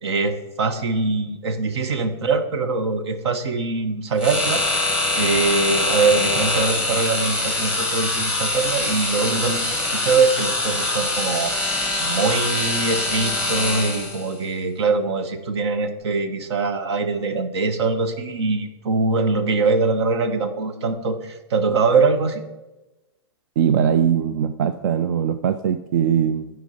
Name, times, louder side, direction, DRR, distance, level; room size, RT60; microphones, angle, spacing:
voice 1, 0.0-4.6 5.1-9.6 9.9-11.5 12.0-22.4, right 4 dB, 70° right, 9 dB, 1.1 m, -22 dB
sound 1, 4.2-14.3, left 2 dB, 5° right, 1.8 m, -23 dB
voice 2, 23.6-26.5, right 8 dB, 45° right, 10 dB, 0.4 m, -21 dB
9.1 x 4.7 x 5.5 m, 1.1 s
hypercardioid pair, 160°, 15 cm